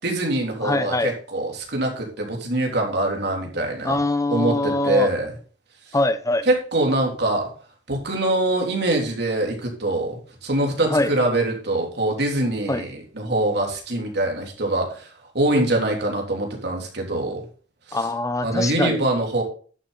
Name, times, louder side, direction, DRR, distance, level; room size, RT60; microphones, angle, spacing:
voice 1, 0.0-4.0 4.3-5.4 5.9-6.0 6.4-7.5 7.9-17.4 17.9-18.1 18.4-19.4, right 2 dB, 65° right, 3.5 m, -24 dB
voice 2, 0.6-1.1 3.8-5.1 5.9-6.5 10.9-11.1 12.7-12.8 17.9-19.1, left 2 dB, 20° left, 0.8 m, -23 dB
11.0 x 7.3 x 4.2 m
head